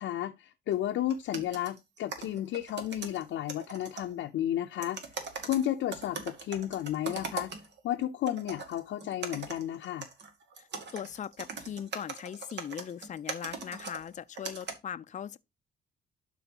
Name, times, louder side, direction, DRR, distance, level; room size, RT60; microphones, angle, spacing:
voice 1, 0.0-5.0 5.4-7.5 7.8-10.1, left 12 dB, 75° left, 0.7 m, -32 dB
sound 1, 0.7-0.8 1.1-4.1 4.8-7.9 8.3-14.7, right 4 dB, 60° right, 1.9 m, -41 dB
voice 2, 10.9-15.4, left 9 dB, 40° left, 0.5 m, -39 dB
12.0 x 4.3 x 2.9 m
cardioid pair, 90°, 20 cm